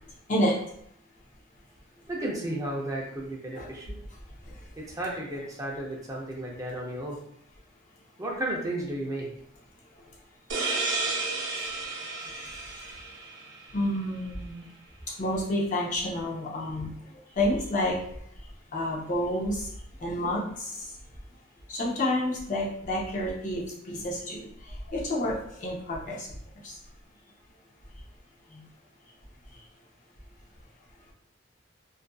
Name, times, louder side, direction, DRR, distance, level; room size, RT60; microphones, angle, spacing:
voice 1, 2.1-4.0 4.8-7.2 8.2-9.3, right 1 dB, 15° right, -3 dB, 0.4 m, -33 dB
sound 1, 10.5-13.9, right 3 dB, 65° right, 0.6 m, -32 dB
voice 2, 12.3-12.7 13.7-14.7 15.2-16.9 17.4-18.0 18.7-19.7 20.0-20.9 21.7-24.5 24.9-26.3 26.6-26.7, left 1 dB, 40° left, -3 dB, 0.6 m, -29 dB
2.5 x 2.4 x 2.2 m, 0.68 s
head